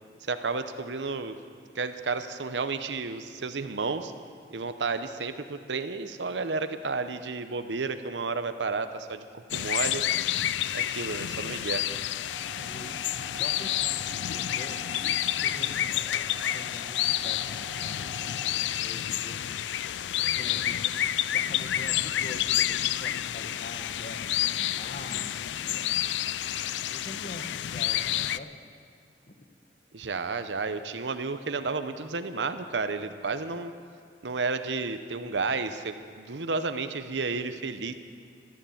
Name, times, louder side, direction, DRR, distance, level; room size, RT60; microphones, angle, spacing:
voice 1, 0.2-1.3 1.7-4.1 4.5-10.0 10.7-11.9 29.9-33.7 34.2-37.9, right 4 dB, 85° right, 10 dB, 0.8 m, -32 dB
sound 1, 9.5-28.4, left 12 dB, 85° left, 0.4 m, -29 dB
sound 2, 12.3-18.5, right 1 dB, 30° right, 1.4 m, -46 dB
voice 2, 12.5-13.0 13.4-14.8 15.4-16.0 16.5-19.4 20.4-26.1 26.8-28.5 29.3-29.4, left 1 dB, 45° left, 5 dB, 1.3 m, -44 dB
13.5 x 12.5 x 7.1 m, 2.2 s
head